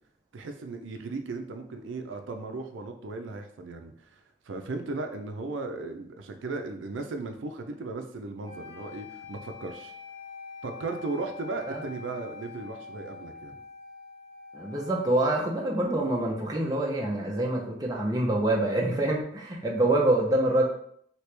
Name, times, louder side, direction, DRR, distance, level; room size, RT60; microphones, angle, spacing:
voice 1, 0.3-4.2 4.5-9.9 10.6-13.5, right 3 dB, 90° right, 5 dB, 0.4 m, -36 dB
sound 1, 8.4-16.5, left 4 dB, 15° left, 0.7 m, -45 dB
voice 2, 14.5-20.6, right 1 dB, 20° right, -1 dB, 0.5 m, -26 dB
3.0 x 2.8 x 3.2 m, 0.64 s
head